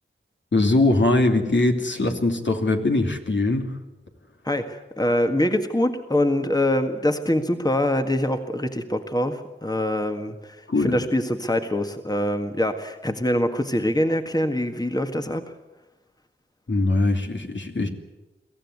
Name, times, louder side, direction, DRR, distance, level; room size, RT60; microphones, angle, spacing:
voice 1, 0.5-3.8 10.7-11.0 16.7-17.9, left 2 dB, 65° left, 3 dB, 2.8 m, -21 dB
voice 2, 4.4-15.5, left 1 dB, 20° left, 6 dB, 1.7 m, -24 dB
23.5 x 15.5 x 9.6 m, 1.1 s
wide cardioid pair, 50°, 21 cm